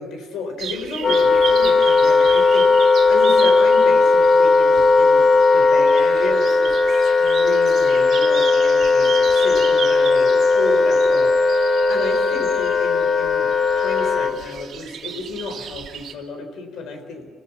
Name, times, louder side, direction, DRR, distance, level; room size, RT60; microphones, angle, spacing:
voice 1, 0.0-5.2 5.5-17.3, left 3 dB, 80° left, 6 dB, 4.3 m, -32 dB
sound 1, 0.6-16.1, right 8 dB, 70° right, 2.2 m, -34 dB
Wind instrument woodwind instrument, 1.0-14.4, left 3 dB, 50° left, 1.6 m, -16 dB
25.5 x 16.0 x 7.3 m, 1.4 s
cardioid pair, 90°, 0 cm